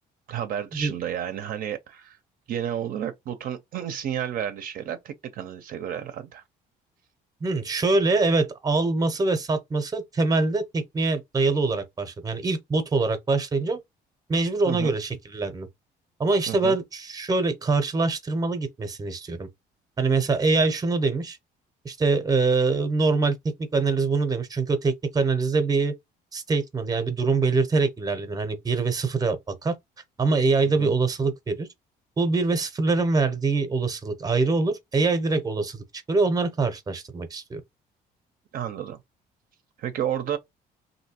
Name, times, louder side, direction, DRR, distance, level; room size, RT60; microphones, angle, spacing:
voice 1, 0.3-2.2 2.5-6.4 14.7-15.0 16.5-16.8 30.8-30.9 38.5-39.0 39.8-40.4, right 10 dB, 55° right, 0.5 m, -31 dB
voice 2, 7.4-13.8 14.3-15.7 16.2-19.5 20.0-21.4 21.8-23.3 23.7-25.9 26.3-29.7 30.2-31.7 32.2-35.8 36.1-37.6, right 3 dB, 20° right, 0.7 m, -24 dB
3.1 x 2.7 x 2.8 m
cardioid pair, 110°, 17 cm